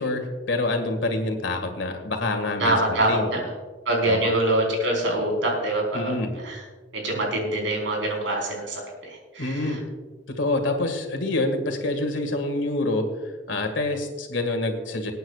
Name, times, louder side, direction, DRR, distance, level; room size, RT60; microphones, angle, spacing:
voice 1, 0.0-3.3 4.1-4.3 5.9-6.3 9.4-9.8 10.3-13.1 13.5-15.1, left 2 dB, 85° left, 5 dB, 1.9 m, -26 dB
voice 2, 2.6-3.5 3.9-6.6 6.9-9.8, right 1 dB, 85° right, -1 dB, 4.3 m, -25 dB
26.0 x 9.2 x 2.4 m, 1.3 s
head